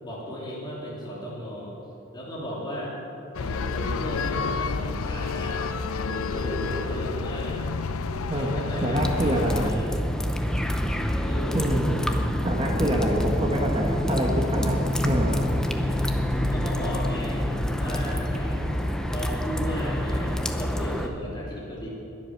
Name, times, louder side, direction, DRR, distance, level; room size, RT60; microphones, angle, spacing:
voice 1, 0.0-1.8 2.1-2.9 3.3-5.6 6.0-7.6 8.3-9.9 11.2-11.8 16.5-17.5 17.8-21.9, equal, 20° left, -5 dB, 3.2 m, -35 dB
street musician, 3.3-9.7, left 4 dB, 90° left, 0.6 m, -30 dB
voice 2, 8.3-9.7 11.5-11.9 12.4-15.4, equal, 25° right, -1 dB, 1.2 m, -26 dB
sound 1, 8.9-21.1, equal, 5° left, 0.6 m, -26 dB
21.0 x 7.8 x 6.5 m, 2.9 s
head